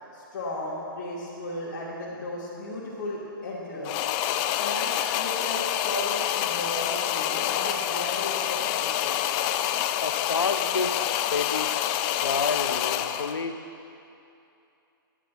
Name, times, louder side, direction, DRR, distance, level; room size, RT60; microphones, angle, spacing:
voice 1, 0.1-4.0 4.6-9.3, left 1 dB, 45° left, -9 dB, 2.7 m, -35 dB
sound 1, 3.8-13.4, left 12 dB, 25° left, 0.3 m, -27 dB
voice 2, 10.0-11.7 12.2-13.6, left 4 dB, 85° left, 9 dB, 0.8 m, -30 dB
11.0 x 9.5 x 5.9 m, 2.7 s
hypercardioid pair, 135°, 12 cm